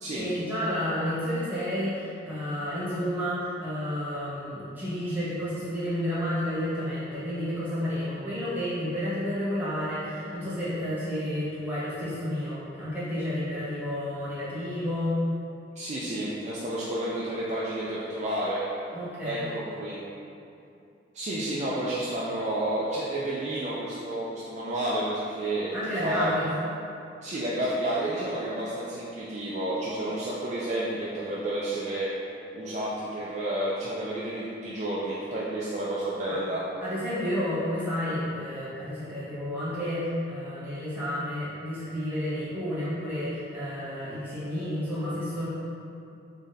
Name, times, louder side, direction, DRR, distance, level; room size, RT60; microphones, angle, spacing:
voice 1, 0.2-15.2 18.9-19.5 25.7-26.6 36.3-36.4 36.8-45.5, equal, 10° right, -11 dB, 1.0 m, -31 dB
voice 2, 15.8-18.6 19.2-20.0 21.1-25.7 26.0-26.3 27.2-32.1 32.5-36.6, right 1 dB, 35° right, -7 dB, 0.3 m, -30 dB
3.8 x 3.2 x 2.6 m, 2.6 s
head